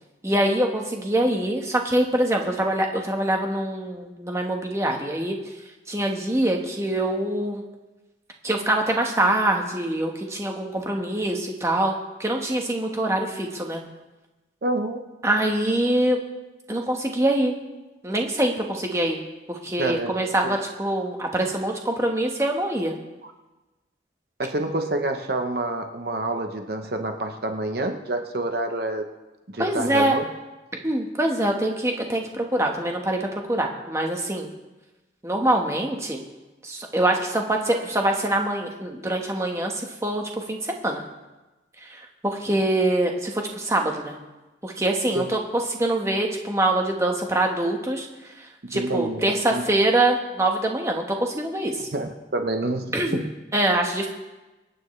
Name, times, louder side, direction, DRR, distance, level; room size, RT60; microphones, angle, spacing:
voice 1, 0.2-5.4 5.9-7.6 8.4-11.9 12.2-13.8 15.2-16.2 16.7-17.5 18.0-19.2 19.5-22.9 29.6-30.2 30.7-34.5 35.2-36.2 36.6-41.0 41.8-44.1 44.6-48.1 48.7-51.8 52.9-53.2 53.5-54.1, right 1 dB, 15° right, 1 dB, 1.3 m, -24 dB
voice 2, 14.6-15.0 19.8-20.1 20.4-20.6 24.4-29.0 29.5-30.3 45.1-45.3 48.6-49.6 51.9-52.9 53.1-53.3, right 2 dB, 55° right, 5 dB, 0.9 m, -27 dB
25.5 x 9.1 x 3.2 m, 1.1 s
head